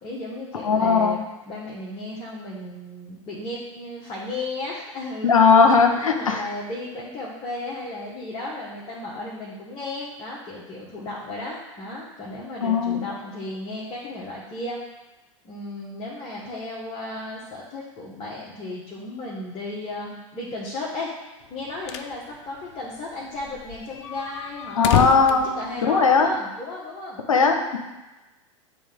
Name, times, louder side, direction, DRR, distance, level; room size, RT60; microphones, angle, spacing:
voice 1, 0.0-1.2 1.5-5.3 5.8-14.8 15.4-21.1 21.5-24.9 25.3-27.2, left 2 dB, 30° left, -5 dB, 1.3 m, -34 dB
voice 2, 0.6-1.2 5.2-6.4 12.6-13.1 24.8-25.5 25.9-26.3 27.3-27.8, left 5 dB, 85° left, 5 dB, 0.8 m, -18 dB
sound 1, 21.5-22.2 22.5-22.6 22.8-22.9 23.4-26.4, left 11 dB, 55° left, 0.4 m, -28 dB
8.8 x 3.4 x 3.6 m, 1.1 s
hypercardioid pair, 90°, 17 cm